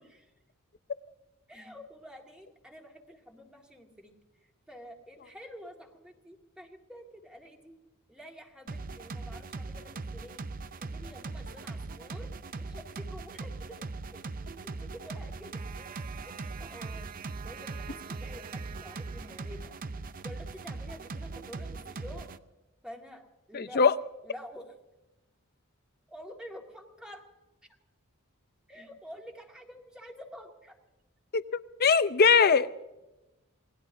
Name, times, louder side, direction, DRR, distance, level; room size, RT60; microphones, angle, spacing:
voice 1, 1.5-4.1 4.7-7.8 8.1-10.4 10.8-12.3 12.6-14.2 14.6-17.1 17.4-19.8 20.2-22.3 22.8-23.8 24.2-24.7 26.1-27.3 28.7-30.8, equal, 5° right, 0 dB, 1.9 m, -49 dB
sound 1, 8.7-22.4, right 3 dB, 40° right, 0.6 m, -40 dB
voice 2, 23.5-24.0 31.3-32.8, left 5 dB, 45° left, 13 dB, 0.6 m, -22 dB
28.0 x 19.0 x 2.7 m, 1.0 s
head